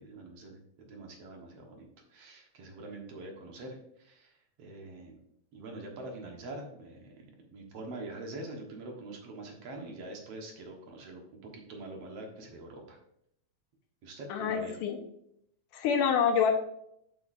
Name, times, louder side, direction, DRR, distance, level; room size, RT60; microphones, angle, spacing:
voice 1, 0.0-5.2 5.5-13.0 14.0-14.8, right 2 dB, 55° right, 1 dB, 2.1 m, -45 dB
voice 2, 14.3-15.0 15.7-16.5, left 7 dB, 85° left, 3 dB, 2.5 m, -26 dB
8.2 x 8.2 x 2.6 m, 0.74 s
omnidirectional pair, 3.7 m